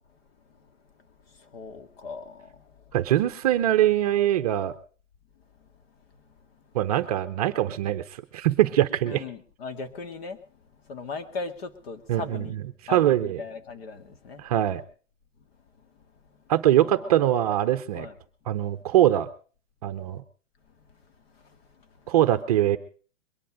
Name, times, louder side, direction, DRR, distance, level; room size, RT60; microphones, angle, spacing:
voice 1, 1.3-2.8 9.0-10.4 10.9-12.5 12.9-14.4 16.8-17.3 17.9-18.1 21.4-21.6, left 4 dB, 50° left, 2.2 m, -38 dB
voice 2, 2.9-4.7 6.7-8.0 8.3-9.2 12.1-12.4 12.9-13.4 14.4-14.8 16.5-18.1 18.5-19.3 19.8-20.2 22.1-22.8, right 12 dB, 30° right, 0.8 m, -22 dB
22.0 x 10.5 x 5.0 m
hypercardioid pair, 170°, 37 cm